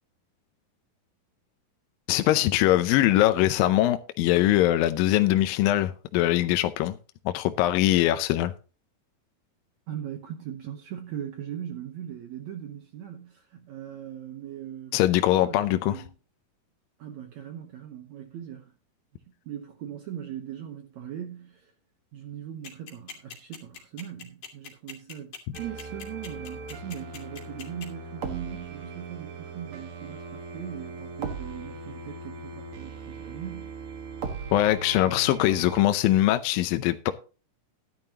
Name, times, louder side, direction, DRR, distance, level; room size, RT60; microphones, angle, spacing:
voice 1, 2.1-7.0 7.3-8.5 14.9-16.0 34.5-37.1, left 14 dB, 80° left, 2.3 m, -22 dB
voice 2, 9.9-15.0 15.3-16.1 17.0-18.7 19.5-21.7 22.1-33.7, right 10 dB, 70° right, 1.8 m, -40 dB
sound 1, 22.6-27.9, left 7 dB, 55° left, 3.6 m, -41 dB
sound 2, 25.5-35.8, right 4 dB, 50° right, 1.8 m, -39 dB
13.0 x 11.0 x 2.9 m
omnidirectional pair, 4.3 m